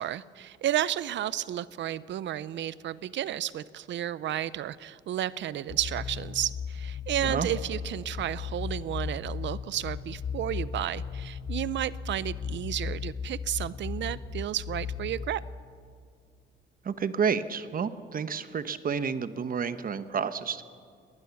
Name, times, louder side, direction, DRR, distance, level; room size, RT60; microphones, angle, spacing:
voice 1, 0.0-15.4, right 12 dB, 65° right, 18 dB, 0.7 m, -32 dB
sound 1, 5.7-15.3, left 6 dB, 55° left, 1.5 m, -36 dB
voice 2, 16.8-20.6, right 6 dB, 45° right, 12 dB, 1.1 m, -30 dB
20.0 x 19.5 x 7.1 m, 2.2 s
cardioid pair, 90°, 20 cm